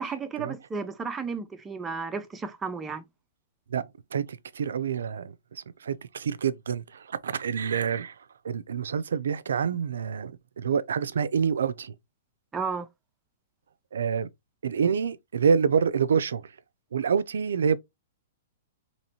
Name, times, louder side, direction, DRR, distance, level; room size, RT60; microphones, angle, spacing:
voice 1, 0.0-3.0 12.5-12.9, right 5 dB, 15° right, 0.5 m, -33 dB
voice 2, 3.7-4.3 4.5-8.2 8.4-11.9 13.9-14.3 14.6-16.5 16.9-17.8, right 6 dB, 85° right, 0.4 m, -27 dB
4.1 x 3.0 x 2.8 m
hypercardioid pair, 140°, 0 cm